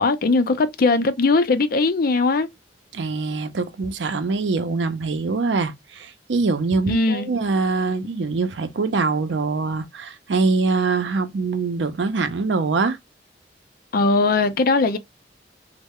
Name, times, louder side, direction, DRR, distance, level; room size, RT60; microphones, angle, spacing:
voice 1, 0.0-2.5 6.9-7.3 13.9-15.0, left 3 dB, 55° left, 0.5 m, -19 dB
voice 2, 2.9-13.0, right 4 dB, 85° right, 0.5 m, -23 dB
3.1 x 2.1 x 3.5 m
head